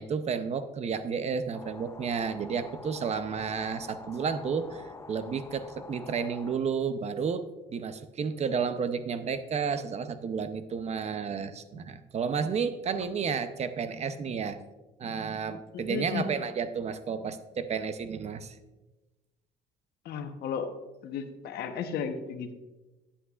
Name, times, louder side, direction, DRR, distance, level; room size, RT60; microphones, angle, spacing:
voice 1, 0.0-7.4 7.7-14.6 15.0-18.6, right 6 dB, 40° right, 11 dB, 0.7 m, -32 dB
sound 1, 1.5-6.6, left 4 dB, 15° left, 0.5 m, -47 dB
voice 2, 15.7-16.3 20.0-20.7 21.0-22.5, left 6 dB, 70° left, 7 dB, 1.0 m, -34 dB
11.0 x 9.9 x 2.5 m, 1.1 s
cardioid pair, 110°, 17 cm